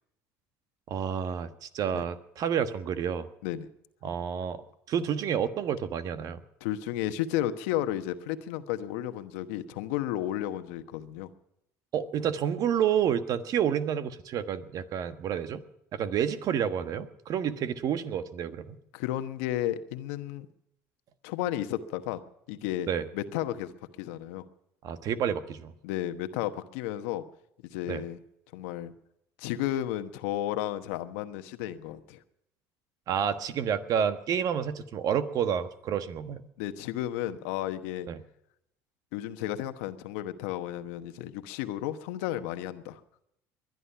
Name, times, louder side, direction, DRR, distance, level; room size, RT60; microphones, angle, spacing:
voice 1, 0.9-3.2 4.0-4.6 4.9-6.4 11.9-15.6 15.9-18.8 22.9-23.0 24.8-25.7 27.9-28.0 33.1-36.4 38.1-38.2, right 8 dB, 55° right, 11 dB, 1.4 m, -29 dB
voice 2, 6.6-11.3 18.9-20.5 21.2-22.2 22.5-23.7 24.0-24.4 25.8-27.2 27.7-28.2 28.5-28.9 29.4-32.2 36.6-38.1 39.1-43.0, left 12 dB, 80° left, 10 dB, 1.1 m, -33 dB
21.0 x 11.0 x 5.7 m, 0.79 s
supercardioid pair, 85°, 7 cm